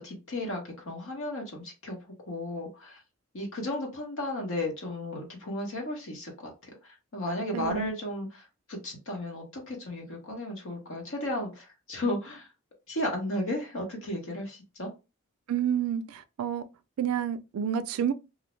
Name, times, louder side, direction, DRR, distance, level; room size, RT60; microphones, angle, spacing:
voice 1, 0.0-2.0 2.3-3.0 3.3-6.5 7.1-12.5 12.9-14.9, left 1 dB, 65° left, 0.9 m, -34 dB
voice 2, 7.5-7.9 15.5-16.7 17.0-18.1, right 8 dB, 70° right, 0.3 m, -29 dB
2.5 x 2.0 x 3.0 m
head